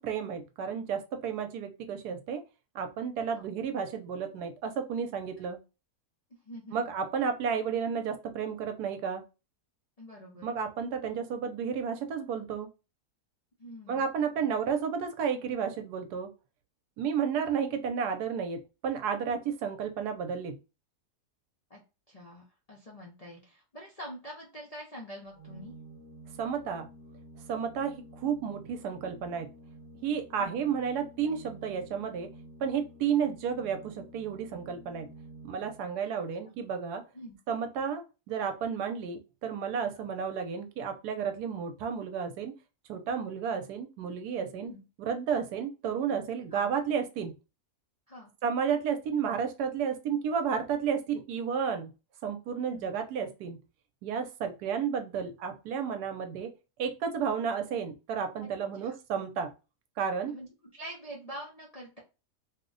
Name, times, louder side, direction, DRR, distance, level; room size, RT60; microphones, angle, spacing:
voice 1, 0.0-2.4 2.7-5.6 6.7-9.2 10.4-12.7 13.9-16.3 17.0-20.6 26.4-26.9 27.5-29.5 30.0-32.3 32.6-35.1 35.4-37.0 37.5-42.5 42.9-44.7 45.0-47.4 48.4-51.9 52.2-53.6 54.0-56.5 56.8-59.5 60.0-60.3, right 7 dB, 85° right, 6 dB, 1.2 m, -32 dB
voice 2, 6.4-6.8 10.0-10.5 13.6-14.1 21.7-21.8 22.1-25.7 30.3-30.6 36.4-36.5 37.1-37.4 44.6-44.8 46.5-46.6 48.1-48.3 52.7-52.9 58.8-58.9 60.3-60.5 60.7-62.0, equal, 55° left, -3 dB, 0.4 m, -45 dB
Organ, 25.3-36.0, right 1 dB, 35° right, 1.0 m, -51 dB
2.9 x 2.1 x 3.8 m, 0.29 s
omnidirectional pair, 1.7 m